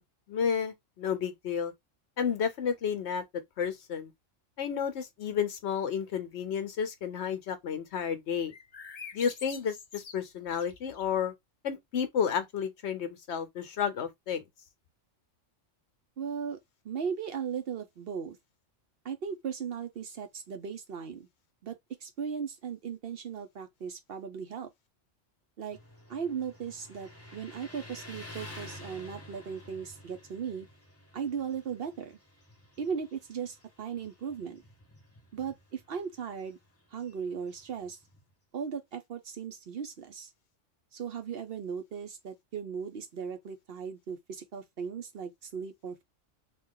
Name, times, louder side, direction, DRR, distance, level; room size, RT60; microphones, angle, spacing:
voice 1, 0.3-1.7 2.2-3.2 3.6-4.1 4.6-8.5 9.1-11.3 11.6-14.4, left 7 dB, 65° left, 0.9 m, -31 dB
sound 1, 8.5-11.2, left 5 dB, 45° left, 0.5 m, -47 dB
voice 2, 16.2-16.6 16.8-18.4 19.0-21.3 21.6-24.7 25.6-25.8 26.1-30.7 31.1-32.2 32.8-34.6 35.3-36.6 36.9-38.0 38.5-40.3 40.9-46.0, right 7 dB, 60° right, 0.8 m, -37 dB
Motorcycle, 25.7-38.3, left 1 dB, 15° left, 0.8 m, -51 dB
2.9 x 2.4 x 3.6 m
omnidirectional pair, 1.3 m